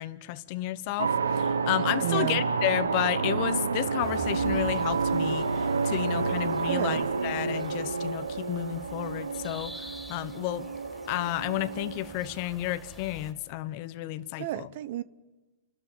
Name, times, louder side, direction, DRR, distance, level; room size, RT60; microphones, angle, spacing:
voice 1, 0.0-10.7 11.1-14.7, left 16 dB, 45° left, 1.1 m, -32 dB
sound 1, 1.0-12.4, right 4 dB, 90° right, 1.1 m, -29 dB
voice 2, 2.0-2.4 6.6-7.0 14.4-15.0, right 14 dB, 55° right, 0.9 m, -31 dB
sound 2, 4.0-13.3, right 1 dB, ahead, 4.3 m, -47 dB
29.5 x 12.5 x 9.1 m
hypercardioid pair, 120°, 0 cm